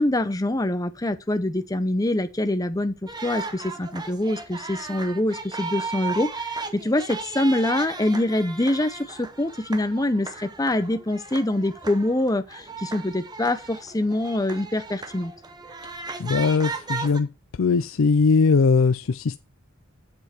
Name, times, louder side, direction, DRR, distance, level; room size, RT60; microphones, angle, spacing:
voice 1, 0.0-15.3, left 1 dB, 15° left, 0.7 m, -25 dB
sound 1, 3.1-17.2, right 4 dB, 20° right, 0.9 m, -36 dB
voice 2, 16.2-17.3 17.6-19.4, left 4 dB, 70° left, 0.5 m, -20 dB
7.7 x 7.2 x 4.4 m
head